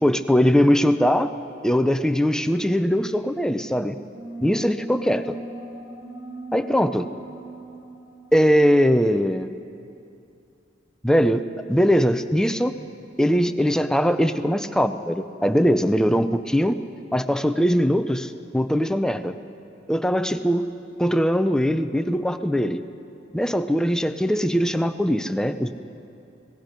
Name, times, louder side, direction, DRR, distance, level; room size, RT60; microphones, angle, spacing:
voice 1, 0.0-1.3 1.6-4.0 4.4-5.2 6.5-7.1 8.3-9.5 11.0-11.4 11.7-12.7 13.2-16.8 17.1-19.3 19.9-20.7 21.0-22.8 23.3-25.7, equal, 5° left, 9 dB, 0.6 m, -21 dB
sound 1, 4.1-9.3, right 1 dB, 25° right, 2.7 m, -38 dB
30.0 x 18.5 x 5.3 m, 2.6 s
head